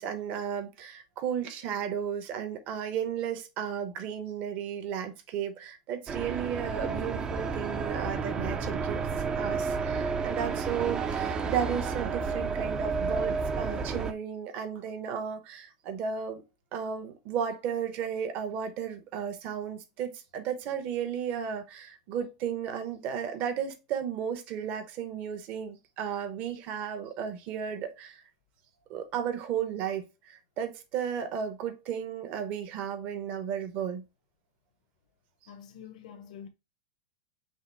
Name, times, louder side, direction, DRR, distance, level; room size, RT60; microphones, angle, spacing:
voice 1, 0.0-9.1 9.3-16.4 16.7-28.2 28.9-34.1, right 8 dB, 40° right, 0.9 m, -34 dB
sound 1, 6.1-14.1, right 5 dB, 20° right, 0.5 m, -31 dB
voice 2, 35.5-36.5, left 8 dB, 80° left, 1.1 m, -46 dB
5.6 x 2.0 x 4.5 m
supercardioid pair, 145°, 4 cm